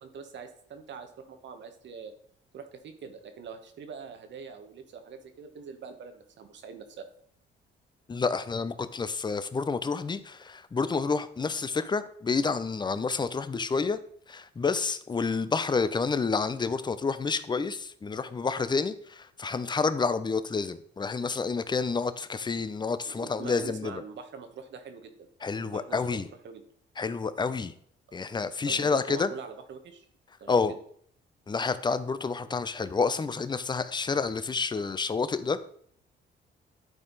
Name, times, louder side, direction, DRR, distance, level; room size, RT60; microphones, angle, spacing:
voice 1, 0.0-2.1 2.5-7.1 23.1-25.3 25.6-26.6 28.6-30.1 30.4-30.8, right 6 dB, 65° right, 7 dB, 1.2 m, -44 dB
voice 2, 8.1-14.0 14.3-24.0 25.4-26.3 27.0-27.7 28.1-29.3 30.5-30.7 31.5-35.7, left 4 dB, 20° left, 13 dB, 0.6 m, -29 dB
10.5 x 4.4 x 4.0 m, 0.63 s
cardioid pair, 90°, 20 cm